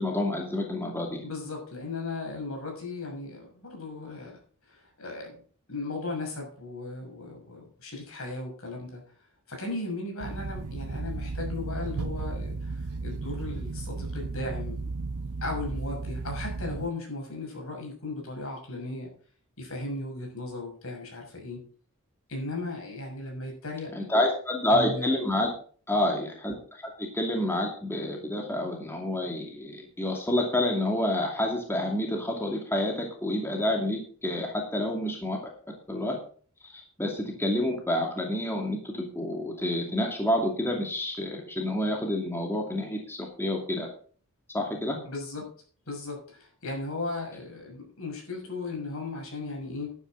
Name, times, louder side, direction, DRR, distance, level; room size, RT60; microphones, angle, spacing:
voice 1, 0.0-1.2 23.9-25.5 25.9-35.4 35.9-36.2 36.6-43.9 44.5-45.0, left 1 dB, 10° left, 1 dB, 2.5 m, -28 dB
voice 2, 1.2-4.4 4.7-5.4 5.7-9.0 9.5-14.8 15.4-19.1 19.6-21.6 22.3-23.9 24.7-25.2 45.0-45.4 45.9-49.9, left 2 dB, 70° left, 2 dB, 6.7 m, -36 dB
sound 1, 10.2-16.9, right 3 dB, 90° right, 0.7 m, -34 dB
12.0 x 12.0 x 4.0 m, 0.43 s
head